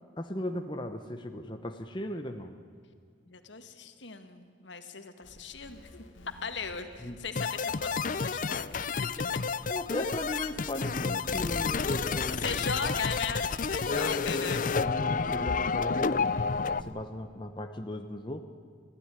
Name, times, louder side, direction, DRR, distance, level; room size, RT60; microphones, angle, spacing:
voice 1, 0.2-2.6 7.0-7.2 9.7-12.9 13.9-18.4, left 1 dB, 25° left, 5 dB, 1.0 m, -37 dB
voice 2, 3.3-6.1 6.4-8.9 12.4-14.6, left 5 dB, 70° left, 7 dB, 1.9 m, -38 dB
sound 1, 5.2-16.9, left 1 dB, 85° left, 1.7 m, -49 dB
sound 2, 7.4-16.8, left 5 dB, 45° left, 0.5 m, -30 dB
25.5 x 15.5 x 9.9 m, 2.2 s
head